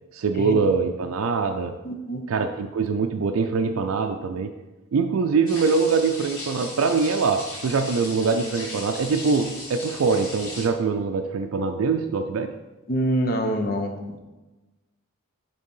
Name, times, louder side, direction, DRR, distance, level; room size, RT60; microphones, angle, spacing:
voice 1, 0.1-1.8 2.3-4.5 4.9-12.5, right 4 dB, 70° right, 5 dB, 0.4 m, -23 dB
voice 2, 1.8-2.2 12.9-14.2, equal, 45° left, 4 dB, 0.7 m, -26 dB
sound 1, 5.5-10.7, left 2 dB, 70° left, 2.2 m, -37 dB
6.4 x 3.5 x 5.4 m, 1.1 s
head